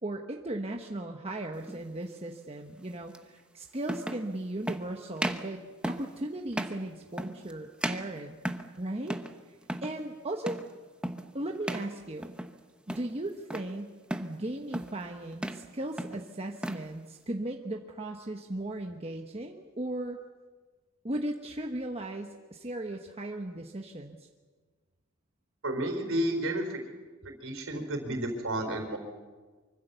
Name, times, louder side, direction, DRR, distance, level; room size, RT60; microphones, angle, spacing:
voice 1, 0.0-8.4 8.8-9.2 9.8-10.6 11.3-12.3 12.9-13.9 14.2-20.2 21.0-24.2, right 1 dB, 25° right, 2 dB, 1.2 m, -37 dB
sound 1, 1.6-1.8 3.1-3.2 3.8-4.3 4.7-4.9 5.2-5.5 5.8-6.1 6.5-6.8 7.2-7.5 7.8-8.8 9.1-9.4 9.6-10.0 10.5-10.7 11.0-11.3 11.6-11.9 12.2-12.6 12.9-13.7 14.1-14.4 14.7-15.0 15.3-15.7 16.0-16.9, right 1 dB, 5° right, 1.1 m, -35 dB
voice 2, 25.6-26.6 27.4-29.0, right 1 dB, 65° right, 5 dB, 4.3 m, -31 dB
25.0 x 24.5 x 7.0 m, 1.4 s
head